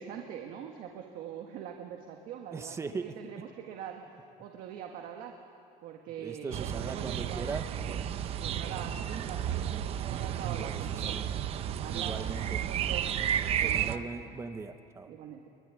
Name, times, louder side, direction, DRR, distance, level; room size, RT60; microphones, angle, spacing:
voice 1, 0.0-5.4 5.8-7.6 8.4-9.7 10.1-11.2 11.8-13.1 13.6-14.0 15.1-15.5, right 9 dB, 65° right, 3 dB, 1.9 m, -43 dB
voice 2, 2.5-3.2 6.2-7.7 10.5-11.3 11.9-12.6 13.6-15.1, right 4 dB, 20° right, 9 dB, 1.0 m, -39 dB
sound 1, 6.5-14.0, right 10 dB, 40° right, 0.8 m, -32 dB
24.0 x 23.5 x 9.9 m, 2.7 s
cardioid pair, 170°, 15 cm